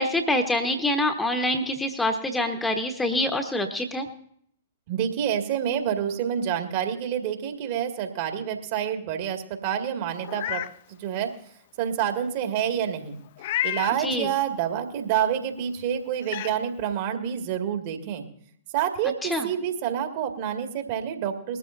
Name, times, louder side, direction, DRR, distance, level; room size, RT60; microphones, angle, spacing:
voice 1, 0.0-4.1 14.0-14.3 19.3-19.5, left 1 dB, 10° left, 5 dB, 1.2 m, -25 dB
voice 2, 4.9-10.6 10.9-11.3 11.8-13.2 13.6-18.3 18.7-21.6, right 9 dB, 45° right, 4 dB, 2.1 m, -28 dB
Meow, 10.2-10.7 11.2-11.3 13.4-14.0 15.6-15.7 16.2-16.5, left 14 dB, 50° left, 0.4 m, -30 dB
21.0 x 13.5 x 2.7 m, 0.65 s
figure-of-eight pair, 110°, 0 cm